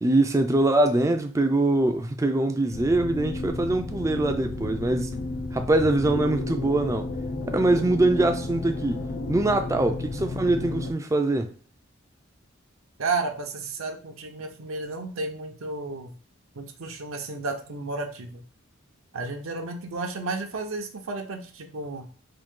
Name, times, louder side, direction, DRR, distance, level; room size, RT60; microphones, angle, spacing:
voice 1, 0.0-5.2 5.5-7.1 7.5-9.0 9.3-11.5, right 2 dB, 15° right, 0.3 m, -23 dB
sound 1, 2.7-10.9, left 2 dB, 45° left, 0.5 m, -32 dB
voice 2, 13.0-16.1 16.6-18.4 19.1-22.1, right 3 dB, 80° right, 0.7 m, -32 dB
3.8 x 2.6 x 3.6 m
head